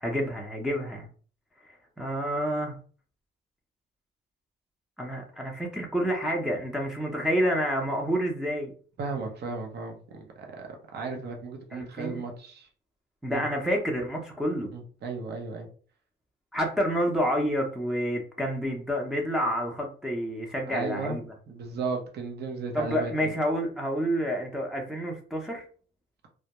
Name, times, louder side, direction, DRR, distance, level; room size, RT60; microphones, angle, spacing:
voice 1, 0.0-1.1 1.7-2.7 5.0-8.7 11.7-12.2 13.2-14.7 16.5-21.3 22.7-25.6, equal, 5° right, -1 dB, 0.6 m, -29 dB
voice 2, 9.0-10.3 10.6-12.7 13.3-13.4 14.7-15.7 20.7-21.2 21.5-23.3, right 4 dB, 55° right, 3 dB, 0.7 m, -35 dB
2.2 x 2.1 x 2.8 m, 0.41 s
cardioid pair, 90°, 20 cm